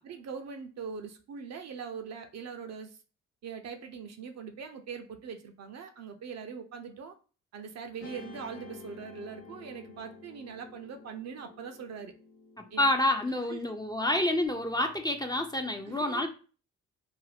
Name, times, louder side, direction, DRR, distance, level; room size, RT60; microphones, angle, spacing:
voice 1, 0.0-3.0 3.4-7.2 7.5-12.1 12.7-12.8 13.5-13.6 14.8-14.9 15.8-16.2, right 6 dB, 50° right, 6 dB, 0.6 m, -42 dB
Guitar, 8.0-14.5, left 4 dB, 80° left, 1.0 m, -51 dB
voice 2, 12.8-16.3, left 1 dB, 10° left, 4 dB, 0.5 m, -28 dB
2.5 x 2.1 x 3.3 m, 0.36 s
hypercardioid pair, 45°, 35 cm